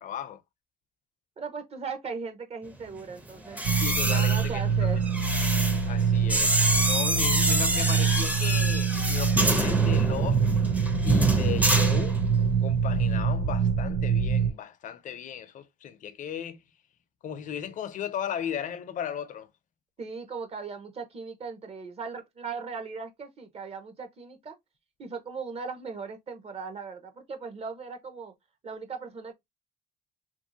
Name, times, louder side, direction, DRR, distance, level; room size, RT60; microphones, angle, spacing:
voice 1, 0.0-0.4 3.7-4.9 5.9-10.4 11.0-12.2 12.6-16.6 17.2-19.5, left 9 dB, 50° left, 0.5 m, -36 dB
voice 2, 1.4-3.6 4.0-5.0 7.1-7.2 20.0-24.6 25.0-28.3 28.6-29.3, right 5 dB, 35° right, 0.8 m, -38 dB
sound 1, 3.4-12.6 12.8-13.2, right 1 dB, 10° right, 0.6 m, -27 dB
sound 2, 3.6-14.5, right 6 dB, 85° right, 0.5 m, -25 dB
2.9 x 2.6 x 2.7 m
cardioid pair, 110°, 17 cm